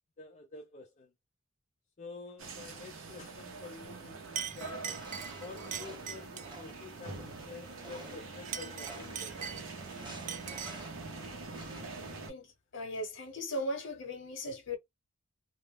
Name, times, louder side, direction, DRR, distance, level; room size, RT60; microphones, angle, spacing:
voice 1, 0.2-1.1 2.0-5.0 5.4-9.5, left 3 dB, 35° left, 0.4 m, -49 dB
sound 1, 2.4-12.3, right 3 dB, 80° right, 0.7 m, -45 dB
Chink clink, 3.9-4.0 4.4-6.6 8.3-9.9 10.3-10.9, right 8 dB, 40° right, 0.3 m, -41 dB
sound 2, 4.3-12.1, right 2 dB, 20° right, 0.9 m, -52 dB
voice 2, 12.7-14.8, left 1 dB, 60° left, 0.9 m, -37 dB
2.2 x 2.1 x 3.1 m
head